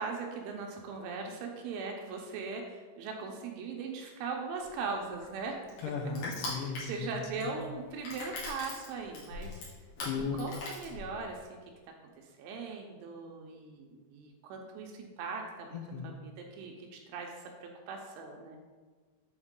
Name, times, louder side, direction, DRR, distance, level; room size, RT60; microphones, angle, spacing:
voice 1, 0.0-5.5 6.4-9.6 10.1-11.6 12.2-18.6, right 4 dB, 80° right, 1 dB, 3.1 m, -40 dB
Crushing, 4.6-11.4, left 3 dB, 60° left, 2.5 m, -42 dB
voice 2, 5.8-7.6 10.0-10.4 15.7-16.1, left 5 dB, 80° left, 3 dB, 3.1 m, -36 dB
8.0 x 4.2 x 3.7 m, 1.4 s
omnidirectional pair, 5.6 m